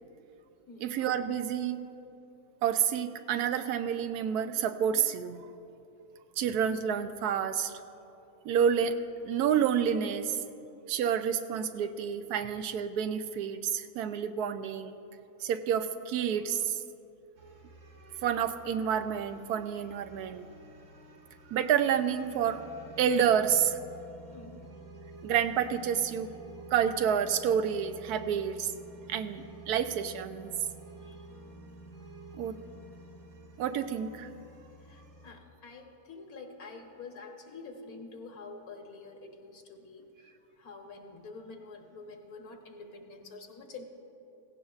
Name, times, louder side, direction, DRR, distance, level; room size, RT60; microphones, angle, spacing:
voice 1, 0.8-1.8 2.6-5.5 6.4-7.7 8.4-9.0 9.2-10.4 10.9-15.0 15.4-16.8 18.2-20.5 21.5-22.6 23.0-23.8 25.2-26.3 26.7-28.7 29.1-30.5 32.3-32.5 33.6-34.3, right 8 dB, 90° right, 10 dB, 1.1 m, -29 dB
sound 1, 17.4-35.3, right 1 dB, 70° right, 1.9 m, -51 dB
voice 2, 24.3-24.8 31.0-31.3 34.8-43.8, left 3 dB, 70° left, 3 dB, 1.5 m, -47 dB
16.5 x 16.0 x 2.4 m, 2.9 s
omnidirectional pair, 1.6 m